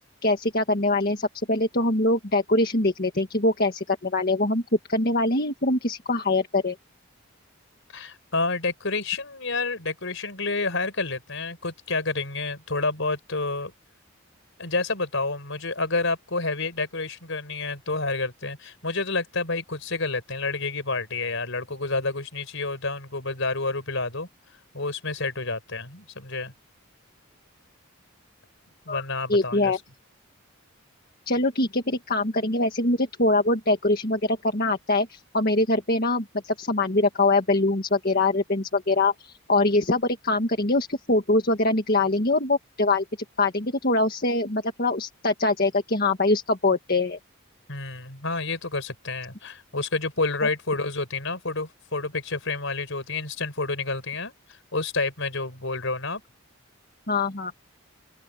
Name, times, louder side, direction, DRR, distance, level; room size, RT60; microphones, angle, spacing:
voice 1, 0.2-4.6 4.9-6.8 28.9-29.0 29.3-29.8 31.3-43.0 43.4-47.2 57.1-57.5, left 2 dB, 45° left, 1.8 m, -23 dB
voice 2, 7.9-13.7 14.6-24.3 24.7-26.5 28.9-29.8 47.7-54.3 54.7-56.2, left 3 dB, 65° left, 5.2 m, -29 dB
open air
head